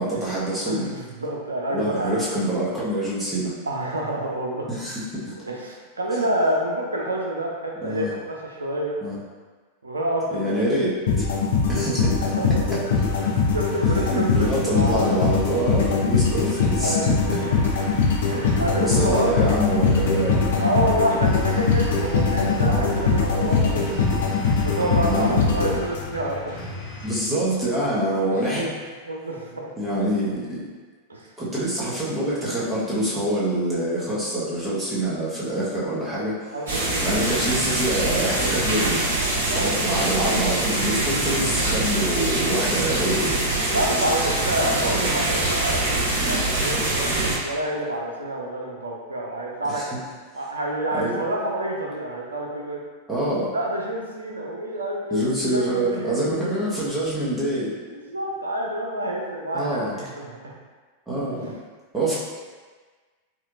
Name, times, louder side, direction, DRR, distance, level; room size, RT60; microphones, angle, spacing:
voice 1, 0.0-0.9 1.7-3.5 4.7-5.3 6.2-6.3 7.8-8.1 9.0-9.2 10.3-10.9 11.2-11.3 11.7-12.3 13.9-17.0 17.3-17.4 18.8-20.5 22.6-23.0 25.1-25.4 27.0-28.7 29.8-30.7 31.4-36.5 37.0-39.0 39.5-43.4 45.0-45.2 49.7-49.9 50.9-51.1 53.1-53.5 55.1-57.7 59.5-59.9 61.1-61.5 61.9-62.1, right 1 dB, 15° right, -8 dB, 1.1 m, -25 dB
voice 2, 0.6-2.1 3.7-4.7 5.4-9.0 9.8-10.5 12.4-12.7 13.5-15.3 16.8-17.3 18.3-19.6 20.6-24.0 24.6-26.8 28.3-28.4 29.1-29.7 31.1-31.3 36.5-37.3 38.4-38.7 39.5-39.8 43.7-49.8 50.3-52.8 53.5-56.6 57.9-60.4, right 1 dB, 75° right, -1 dB, 0.5 m, -28 dB
sound 1, 11.1-26.3, left 4 dB, 60° left, 0.5 m, -22 dB
sound 2, 12.9-27.2, left 2 dB, 30° left, 1.0 m, -36 dB
sound 3, 36.7-47.4, right 2 dB, 60° right, 0.9 m, -24 dB
4.4 x 2.4 x 2.5 m, 1.4 s
figure-of-eight pair, 90°, 0 cm